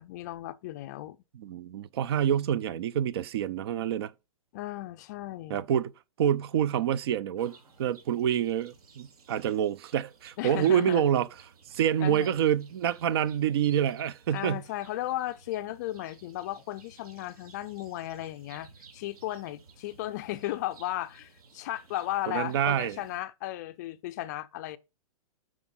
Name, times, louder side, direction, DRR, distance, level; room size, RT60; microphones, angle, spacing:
voice 1, 0.0-1.2 4.5-5.7 10.4-11.1 12.0-12.4 14.3-24.8, left 15 dB, 30° left, 0.5 m, -35 dB
voice 2, 1.3-4.1 5.5-5.9 6.2-11.3 11.7-14.6 22.3-23.0, right 9 dB, 40° right, 0.5 m, -27 dB
sound 1, 7.4-23.2, right 5 dB, 75° right, 4.2 m, -56 dB
7.6 x 6.2 x 6.0 m
hypercardioid pair, 165°, 19 cm